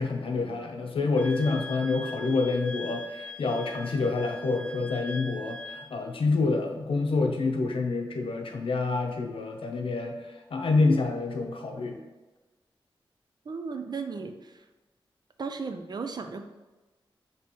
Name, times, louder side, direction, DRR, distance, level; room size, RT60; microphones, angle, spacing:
voice 1, 0.0-10.2 10.5-12.0, left 3 dB, 80° left, 3 dB, 0.7 m, -27 dB
Wind instrument woodwind instrument, 1.2-5.9, left 2 dB, 15° left, 0.4 m, -41 dB
voice 2, 13.5-14.6 15.4-16.5, right 4 dB, 50° right, 6 dB, 0.4 m, -35 dB
6.2 x 3.0 x 2.9 m, 1.2 s
wide cardioid pair, 105°, 9 cm